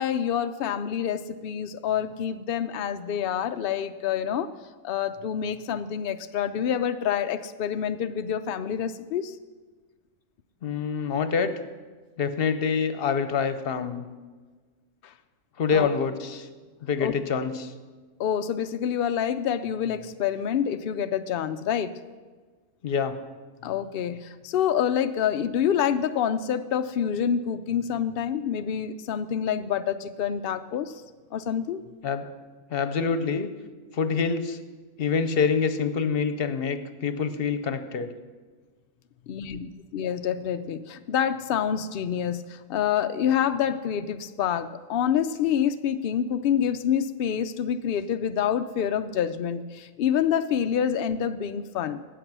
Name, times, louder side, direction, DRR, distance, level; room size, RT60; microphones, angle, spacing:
voice 1, 0.0-4.5 4.8-9.4 15.0-15.1 15.7-15.9 17.0-17.1 18.2-21.9 23.6-31.0 31.3-31.8 39.3-52.0, left 8 dB, 80° left, 9 dB, 0.5 m, -27 dB
voice 2, 10.6-11.5 12.2-14.1 15.6-16.5 16.8-17.7 22.8-23.1 32.0-32.2 32.7-33.5 33.9-34.6 35.0-38.1, left 5 dB, 50° left, 10 dB, 0.9 m, -26 dB
13.0 x 8.6 x 6.1 m, 1.4 s
omnidirectional pair, 1.5 m